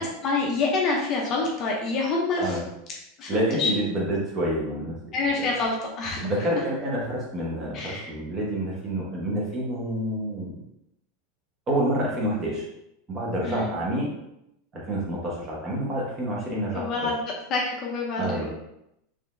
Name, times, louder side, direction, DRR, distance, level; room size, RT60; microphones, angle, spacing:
voice 1, 0.0-2.6 3.2-3.7 5.1-6.2 7.7-8.1 13.4-13.7 16.7-17.2 17.5-18.5, left 3 dB, 30° left, -2 dB, 0.5 m, -27 dB
voice 2, 3.3-4.9 5.4-5.5 6.2-10.5 11.7-12.7 13.1-14.1 14.7-17.1 18.2-18.5, right 1 dB, 20° right, -4 dB, 0.9 m, -28 dB
3.8 x 3.1 x 2.5 m, 0.82 s
supercardioid pair, 170°, 0 cm